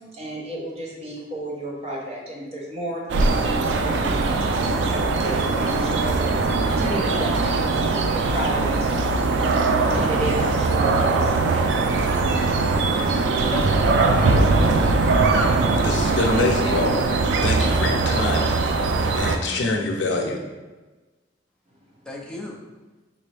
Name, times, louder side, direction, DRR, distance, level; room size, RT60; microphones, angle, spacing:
voice 1, 0.1-9.5 9.8-11.7, right 1 dB, 35° right, -4 dB, 0.8 m, -33 dB
sound 1, 3.1-19.4, right 3 dB, 80° right, 0.4 m, -21 dB
voice 2, 13.5-15.1 22.1-22.6, left 1 dB, 5° left, -2 dB, 0.5 m, -33 dB
voice 3, 15.7-17.1 17.4-18.5 19.1-20.4, left 2 dB, 85° left, 2 dB, 0.6 m, -25 dB
3.7 x 2.7 x 3.3 m, 1.2 s
head